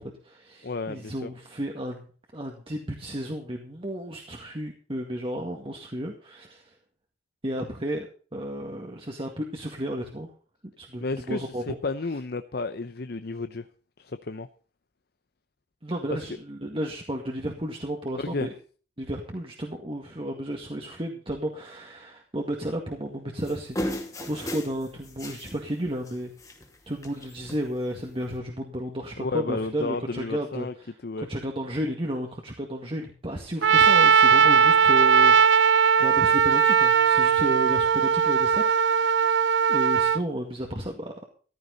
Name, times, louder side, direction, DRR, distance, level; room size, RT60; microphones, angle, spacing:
voice 1, 0.0-6.7 7.4-8.1 8.3-10.3 10.8-11.8 15.8-18.5 19.0-26.3 26.9-30.7 31.2-39.4 39.7-41.3, right 1 dB, 30° right, 1 dB, 1.9 m, -33 dB
voice 2, 0.6-1.3 11.0-13.7 14.0-14.5 18.2-18.5 29.2-30.7 31.0-31.3, left 3 dB, 60° left, 11 dB, 0.7 m, -32 dB
sound 1, 23.4-25.6 25.9-26.1 26.4-26.8 27.0-27.6 28.3-28.4, left 1 dB, 20° left, 2.4 m, -34 dB
Trumpet, 33.6-40.2, right 6 dB, 85° right, 0.6 m, -19 dB
15.0 x 13.0 x 4.0 m, 0.41 s
head